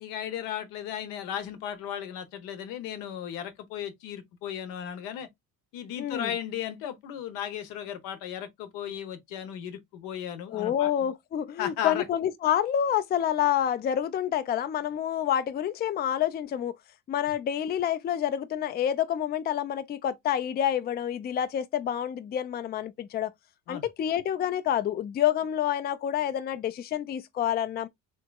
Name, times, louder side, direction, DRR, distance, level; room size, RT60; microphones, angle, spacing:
voice 1, 0.0-5.3 5.7-10.9 11.6-12.0 23.7-23.9, left 9 dB, 85° left, 0.8 m, -35 dB
voice 2, 6.0-6.3 10.5-16.7 17.1-23.3 23.7-27.9, left 10 dB, 30° left, 0.4 m, -28 dB
3.4 x 2.9 x 2.2 m
cardioid pair, 100°, 34 cm